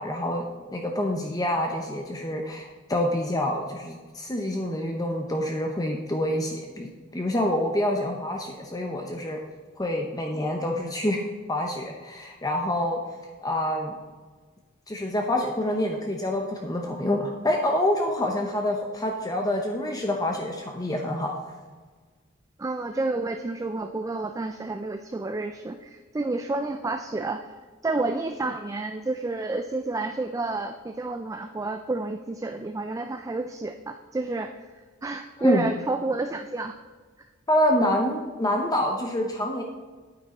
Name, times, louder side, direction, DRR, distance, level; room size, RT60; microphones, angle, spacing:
voice 1, 0.0-9.4 9.8-11.2 11.5-13.0 13.4-14.0 14.9-21.3 35.4-35.7 37.5-39.6, left 1 dB, 20° left, 2 dB, 0.7 m, -27 dB
voice 2, 22.6-27.5 27.8-34.7 35.0-36.8, right 2 dB, 15° right, 6 dB, 0.3 m, -30 dB
9.0 x 8.7 x 4.2 m, 1.4 s
head